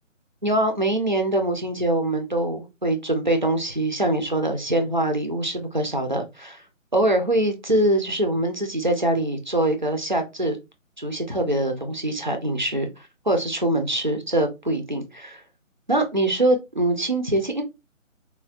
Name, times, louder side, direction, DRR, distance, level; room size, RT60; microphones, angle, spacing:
voice 1, 0.4-6.6 6.9-10.6 11.0-12.9 13.3-15.4 15.9-17.6, right 1 dB, 35° right, 0.5 m, -23 dB
4.3 x 2.1 x 2.3 m
hypercardioid pair, 175°, 40 cm